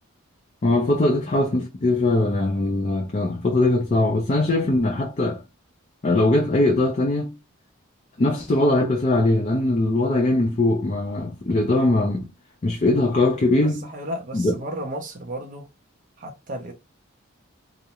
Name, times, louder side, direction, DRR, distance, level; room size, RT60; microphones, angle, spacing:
voice 1, 0.6-5.4 6.0-7.3 8.2-12.3 12.6-13.9 14.3-14.5, left 2 dB, 35° left, 0.4 m, -21 dB
voice 2, 13.8-15.7 16.2-16.7, equal, 40° right, 0.5 m, -33 dB
2.4 x 2.0 x 2.8 m
head